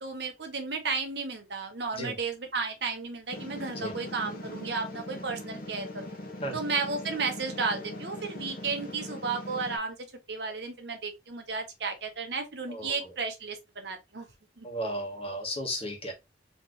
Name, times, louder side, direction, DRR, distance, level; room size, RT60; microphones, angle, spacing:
voice 1, 0.0-6.1 6.5-9.9 10.3-14.3 14.6-14.7, right 4 dB, 75° right, 1.2 m, -33 dB
sound 1, 3.3-9.8, left 1 dB, 55° left, 1.1 m, -41 dB
voice 2, 14.6-16.1, equal, 35° left, 1.4 m, -34 dB
4.2 x 3.2 x 3.2 m
head